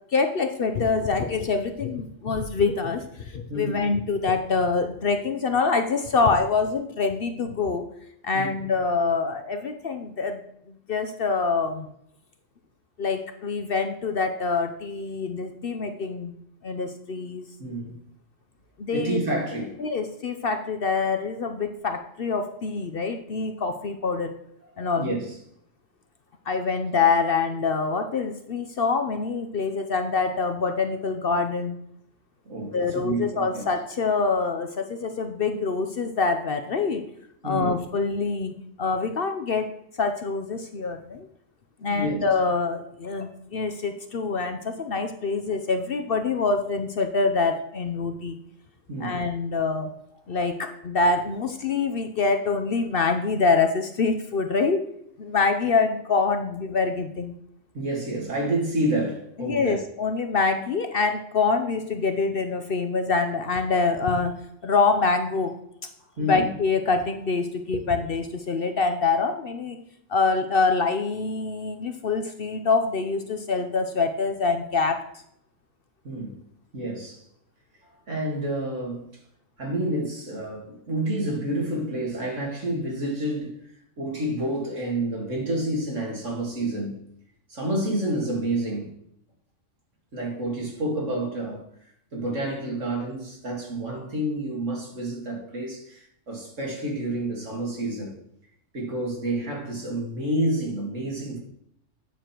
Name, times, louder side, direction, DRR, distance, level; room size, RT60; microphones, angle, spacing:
voice 1, 0.1-7.8 8.2-10.4 10.7-11.9 13.0-16.4 16.6-17.5 18.8-19.2 19.8-24.3 24.8-25.1 26.5-31.8 32.7-37.0 37.4-41.3 41.8-48.4 49.0-49.9 50.3-54.8 55.2-57.3 59.4-64.3 64.6-65.6 66.2-69.8 70.1-75.0, left 4 dB, 55° left, 0.8 m, -25 dB
voice 2, 3.5-3.8 8.3-8.5 17.6-18.0 18.9-19.8 25.0-25.3 32.5-33.6 37.4-37.7 41.9-42.2 48.9-49.2 50.3-50.4 57.7-59.8 66.2-66.5 76.0-76.4 76.7-77.2 78.1-79.1 79.6-83.6 84.0-86.9 87.5-88.9 90.1-91.6 92.1-98.1 98.7-101.4, right 1 dB, 70° right, 2.8 m, -29 dB
9.2 x 6.6 x 4.5 m
omnidirectional pair, 1.4 m